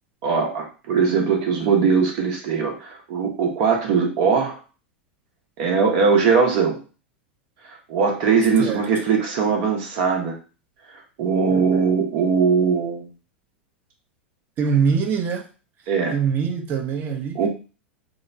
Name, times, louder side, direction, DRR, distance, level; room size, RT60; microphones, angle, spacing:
voice 1, 0.2-4.6 5.6-6.8 7.9-10.3 11.2-13.1 15.9-16.1 17.3-17.5, right 5 dB, 50° right, 1.0 m, -20 dB
voice 2, 14.6-15.4 16.1-17.4, right 6 dB, 35° right, 0.7 m, -23 dB
3.6 x 2.1 x 2.6 m
figure-of-eight pair, 85°, 6 cm